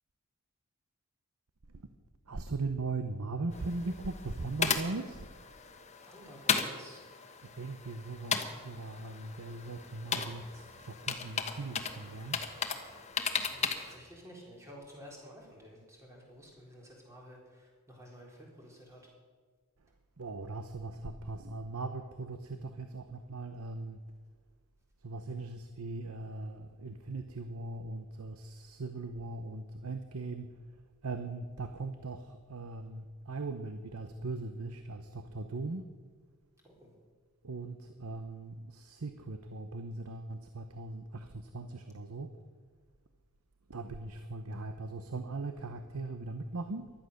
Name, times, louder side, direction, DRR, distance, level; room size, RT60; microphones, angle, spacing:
voice 1, 2.3-5.4 7.4-12.4 20.2-24.0 25.0-30.7 31.0-36.0 37.4-42.3 43.7-46.9, right 3 dB, 90° right, 8 dB, 0.9 m, -39 dB
sound 1, 3.5-14.0, left 6 dB, 30° left, 1.2 m, -36 dB
voice 2, 6.0-7.0 13.5-19.0 36.6-36.9, equal, 15° right, -2 dB, 3.9 m, -52 dB
16.0 x 12.0 x 6.6 m, 1.5 s
head